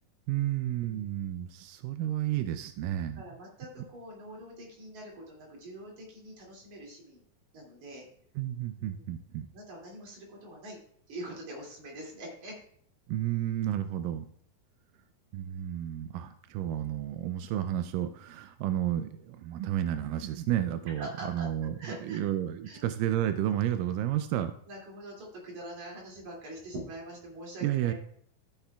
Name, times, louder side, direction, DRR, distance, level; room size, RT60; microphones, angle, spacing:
voice 1, 0.3-3.2 8.4-9.5 13.1-14.3 15.3-24.5 27.6-27.9, right 12 dB, 80° right, 9 dB, 2.0 m, -31 dB
voice 2, 3.1-7.2 7.5-8.1 8.8-9.1 9.5-10.8 11.1-12.6 21.0-21.5 21.8-22.2 22.6-22.8 24.7-27.9, right 1 dB, 55° right, -2 dB, 3.8 m, -44 dB
12.5 x 9.8 x 2.3 m, 0.65 s
omnidirectional pair, 4.2 m